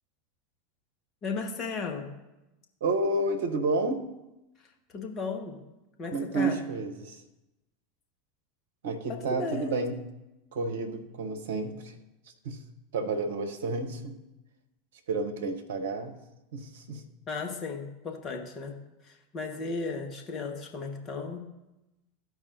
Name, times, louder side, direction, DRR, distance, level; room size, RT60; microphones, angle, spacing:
voice 1, 1.2-2.1 4.9-5.6 6.0-6.6 9.1-9.8 17.3-18.8 19.0-21.5, left 4 dB, 35° left, 3 dB, 1.4 m, -35 dB
voice 2, 2.8-4.1 6.1-7.2 8.8-10.0 10.5-12.0 12.4-12.6 12.9-14.2 15.1-16.2 16.5-17.0, right 3 dB, 65° right, 7 dB, 0.9 m, -30 dB
13.5 x 4.7 x 2.7 m, 0.98 s
figure-of-eight pair, 80°, 0 cm